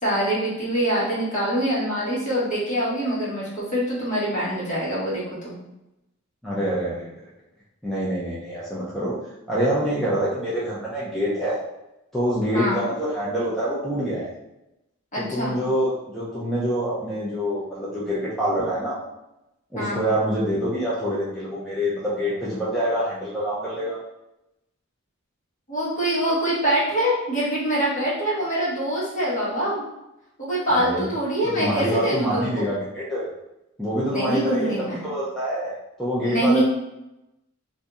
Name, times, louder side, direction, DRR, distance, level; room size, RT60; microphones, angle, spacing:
voice 1, 0.0-5.6 12.5-12.8 15.1-15.5 19.8-20.0 25.7-29.9 30.4-32.7 34.1-35.0 36.2-36.6, right 1 dB, 40° left, -8 dB, 1.4 m, -24 dB
voice 2, 6.4-7.1 7.8-9.1 9.5-11.6 12.1-14.3 15.2-19.0 19.7-24.0 30.7-31.1 31.4-33.3 33.8-36.6, equal, ahead, -9 dB, 0.5 m, -26 dB
2.7 x 2.7 x 3.5 m, 0.92 s
head